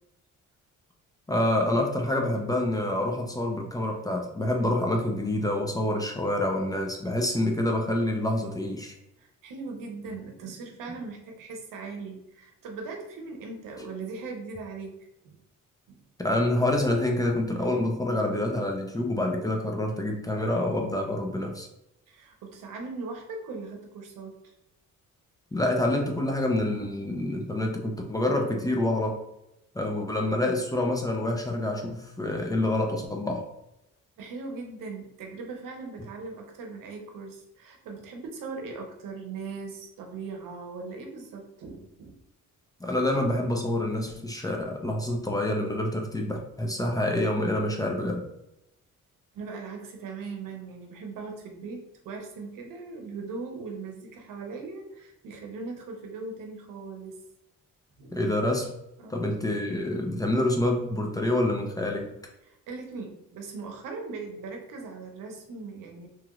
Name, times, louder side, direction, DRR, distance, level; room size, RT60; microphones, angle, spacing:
voice 1, 1.3-8.9 16.2-21.7 25.5-29.2 29.7-33.5 42.8-48.3 58.1-58.7 59.1-62.2, left 1 dB, 10° left, 1 dB, 0.4 m, -27 dB
voice 2, 9.2-15.4 15.9-16.0 22.1-24.5 34.2-42.2 49.3-57.2 58.0-58.2 59.0-59.3 62.4-66.1, right 4 dB, 85° right, 2 dB, 0.7 m, -39 dB
3.0 x 2.8 x 2.4 m, 0.85 s
cardioid pair, 100°, 32 cm